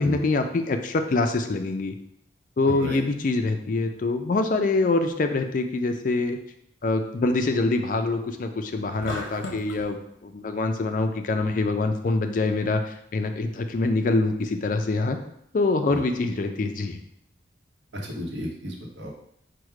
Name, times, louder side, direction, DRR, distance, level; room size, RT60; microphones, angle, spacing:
voice 1, 0.0-1.9 2.6-6.4 6.8-15.2 15.5-17.0, left 3 dB, 45° left, 6 dB, 0.4 m, -25 dB
sound 1, 9.0-9.9, left 2 dB, 75° left, 0.7 m, -35 dB
voice 2, 17.9-19.1, left 1 dB, 75° right, -1 dB, 0.9 m, -33 dB
4.7 x 2.1 x 4.7 m, 0.72 s
head